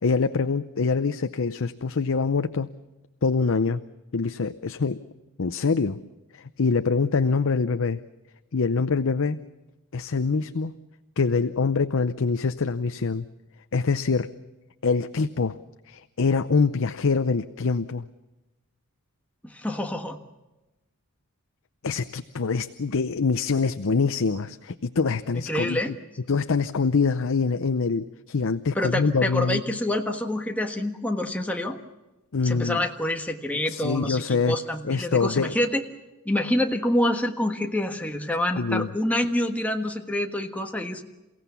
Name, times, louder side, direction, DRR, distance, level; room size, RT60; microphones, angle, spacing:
voice 1, 0.0-2.7 3.2-3.8 4.1-5.0 5.4-6.0 6.3-8.0 8.5-9.4 9.9-10.7 11.2-13.2 13.7-14.3 14.8-15.6 15.9-18.1 21.8-26.0 26.3-29.6 32.3-32.8 33.7-34.6 34.8-35.5 38.6-38.9, left 4 dB, 60° left, 11 dB, 0.7 m, -24 dB
voice 2, 19.5-20.2 25.3-25.9 28.7-31.8 32.4-35.8 36.2-41.0, left 1 dB, 5° left, 3 dB, 1.4 m, -27 dB
29.0 x 16.5 x 7.0 m, 1.1 s
head